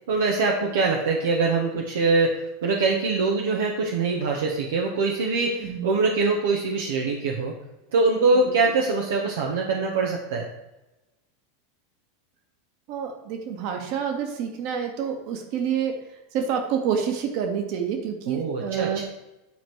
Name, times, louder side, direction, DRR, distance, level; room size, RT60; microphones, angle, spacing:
voice 1, 0.1-7.6 7.9-10.5 18.3-19.1, right 3 dB, 70° right, 0 dB, 1.1 m, -23 dB
voice 2, 12.9-16.0 16.3-19.1, right 7 dB, 55° right, 4 dB, 1.7 m, -28 dB
10.0 x 4.5 x 4.7 m, 0.97 s
figure-of-eight pair, 85°, 0 cm